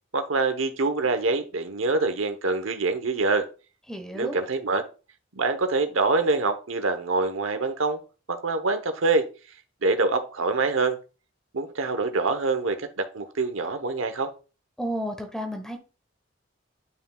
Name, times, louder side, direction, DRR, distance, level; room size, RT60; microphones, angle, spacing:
voice 1, 0.1-3.4 4.1-4.8 5.3-8.0 8.3-9.3 9.8-11.0 11.5-14.3, right 3 dB, 85° right, 8 dB, 1.0 m, -25 dB
voice 2, 3.9-4.4 14.8-15.8, equal, 5° left, 5 dB, 1.2 m, -31 dB
9.8 x 5.7 x 2.4 m, 0.34 s
head